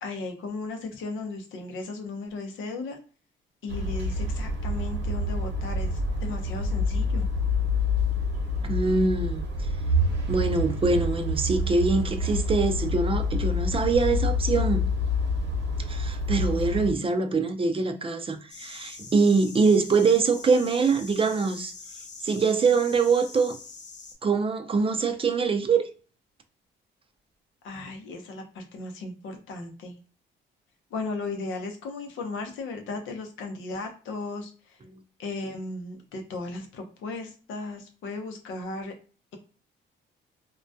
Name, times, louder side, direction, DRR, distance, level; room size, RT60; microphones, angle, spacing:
voice 1, 0.0-3.0 3.6-5.9 6.2-7.3 27.6-29.9 30.9-34.5 35.2-38.9, left 3 dB, 80° left, 0.6 m, -36 dB
sound 1, 3.7-16.9, left 2 dB, 65° right, 0.8 m, -27 dB
voice 2, 8.6-9.4 10.3-14.9 15.9-21.7 22.2-23.6 24.2-25.9, right 4 dB, 25° right, 0.4 m, -24 dB
sound 2, 18.5-24.1, left 4 dB, 35° left, 0.7 m, -44 dB
2.2 x 2.1 x 2.6 m
cardioid pair, 90°, 20 cm